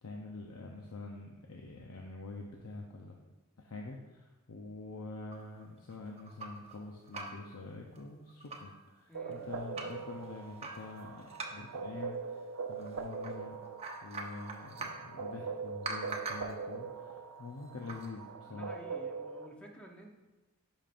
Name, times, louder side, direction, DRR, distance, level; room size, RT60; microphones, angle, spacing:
voice 1, 0.0-3.2 3.6-13.6 14.0-18.7, left 3 dB, 80° left, 0 dB, 0.7 m, -46 dB
sound 1, 5.3-6.7 7.0-7.6 7.9-8.0 8.3-8.8 9.3-10.0 10.6-11.8 12.8-13.3 13.6-15.1 15.8-16.6 17.7-18.1, right 3 dB, 30° right, 0.8 m, -43 dB
voice 2, 9.1-9.5 18.5-20.1, equal, 5° left, 0 dB, 0.7 m, -52 dB
sound 2, 9.1-19.5, right 5 dB, 85° right, 0.6 m, -42 dB
10.5 x 5.2 x 2.5 m, 1.1 s
head